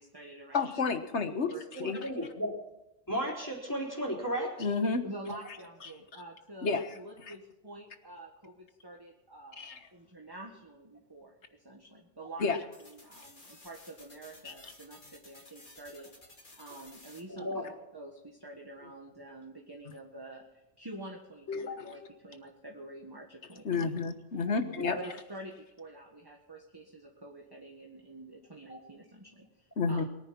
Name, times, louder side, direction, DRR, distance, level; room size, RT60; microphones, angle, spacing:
voice 1, 0.0-0.7 1.5-2.0 5.0-12.4 12.8-16.1 16.6-23.9 25.0-30.0, right 1 dB, 20° right, 1 dB, 1.7 m, -48 dB
voice 2, 0.5-2.0 4.6-5.0 6.6-6.9 7.3-7.4 9.6-9.8 12.4-12.6 14.4-14.5 21.5-22.1 23.6-25.0 29.8-30.0, left 4 dB, 70° left, 8 dB, 1.7 m, -31 dB
voice 3, 1.7-2.5 3.1-4.6 17.3-17.6 24.5-25.0 28.7-28.8, equal, 15° left, -1 dB, 3.9 m, -35 dB
sound 1, 12.7-17.2, left 2 dB, 45° left, 2.6 m, -55 dB
22.0 x 9.8 x 6.0 m, 0.95 s
omnidirectional pair, 1.2 m